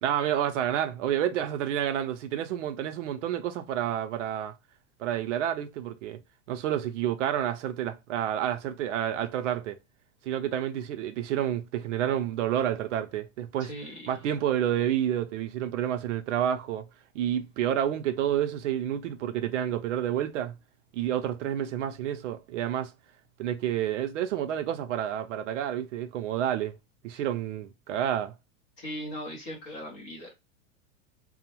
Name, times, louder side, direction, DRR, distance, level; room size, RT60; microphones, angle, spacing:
voice 1, 0.0-4.5 5.0-6.2 6.5-9.8 10.2-13.7 14.1-16.9 17.1-20.6 20.9-22.9 23.4-26.8 27.0-28.3, right 10 dB, 65° right, 0.5 m, -29 dB
voice 2, 13.6-14.2 27.1-27.3 28.8-30.3, equal, 25° left, 0.5 m, -39 dB
2.7 x 2.0 x 2.8 m
supercardioid pair, 175°, 40 cm